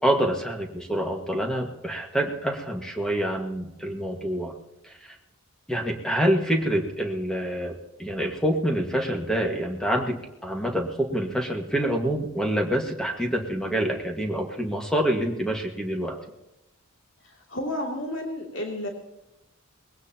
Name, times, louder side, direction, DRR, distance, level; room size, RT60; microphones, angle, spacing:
voice 1, 0.0-4.5 4.8-5.2 5.7-16.2, right 1 dB, 5° left, 1 dB, 1.7 m, -26 dB
voice 2, 17.5-18.9, left 1 dB, 55° left, 0 dB, 2.9 m, -31 dB
21.0 x 17.5 x 2.9 m, 0.95 s
head